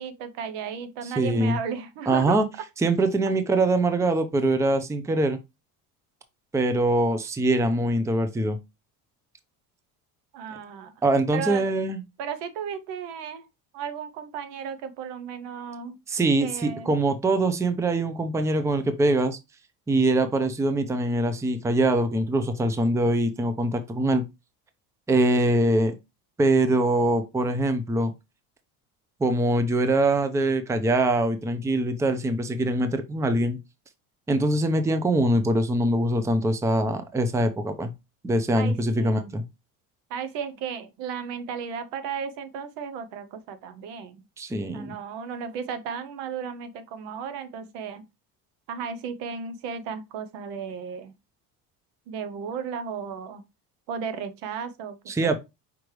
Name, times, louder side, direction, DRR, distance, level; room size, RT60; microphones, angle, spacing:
voice 1, 0.0-2.4 10.3-10.9 11.3-11.6 12.2-13.5 13.7-16.0 16.4-16.9 38.6-39.3 40.1-44.2 44.7-48.0 48.7-51.1 52.1-53.4 53.9-55.4, right 7 dB, 70° right, 0.9 m, -34 dB
voice 2, 1.2-1.6 2.1-2.5 2.8-5.4 6.5-8.6 11.0-12.0 16.1-19.4 19.9-24.2 25.1-25.9 26.4-28.1 29.2-33.6 34.3-37.9 38.2-39.4 44.4-44.9 55.1-55.4, right 2 dB, 5° right, 0.5 m, -23 dB
5.1 x 3.2 x 3.1 m
supercardioid pair, 100°, 44 cm